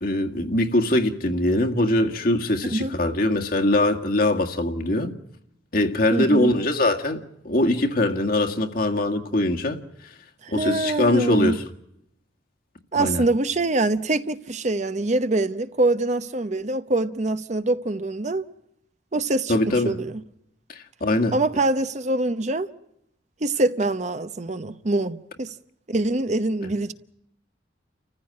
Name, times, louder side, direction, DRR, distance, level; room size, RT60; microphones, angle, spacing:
voice 1, 0.0-5.1 5.7-9.8 10.5-11.6 12.9-13.2 19.5-20.0 20.7-21.4, left 1 dB, 55° left, 1.9 m, -22 dB
voice 2, 6.1-6.5 10.4-11.6 12.9-18.5 19.1-20.1 21.3-22.7 23.4-25.5 25.9-26.9, right 2 dB, 40° right, 0.9 m, -24 dB
29.5 x 15.0 x 8.5 m
head